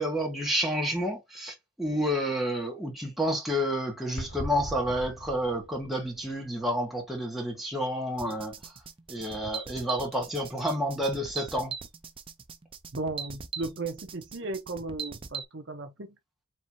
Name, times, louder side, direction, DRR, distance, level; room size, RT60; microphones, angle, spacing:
voice 1, 0.0-8.7 9.1-11.7, equal, ahead, 1.5 m, -30 dB
sound 1, 4.2-7.2 7.4-7.6 8.2-8.3 12.8-12.9, equal, 80° left, 2.6 m, -41 dB
sound 2, 8.2-15.4, right 6 dB, 25° right, 0.5 m, -40 dB
voice 2, 12.9-16.2, right 2 dB, 60° right, 0.8 m, -36 dB
4.5 x 3.2 x 2.6 m
head